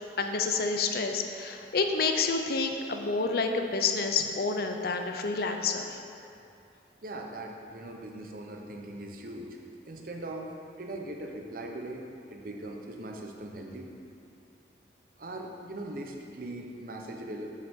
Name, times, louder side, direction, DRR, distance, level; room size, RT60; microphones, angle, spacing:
voice 1, 0.2-6.0, left 4 dB, 55° left, 5 dB, 0.5 m, -29 dB
voice 2, 7.0-9.6 9.9-13.9 15.2-17.5, right 1 dB, 50° right, 1 dB, 0.7 m, -40 dB
8.1 x 5.8 x 3.6 m, 2.7 s
head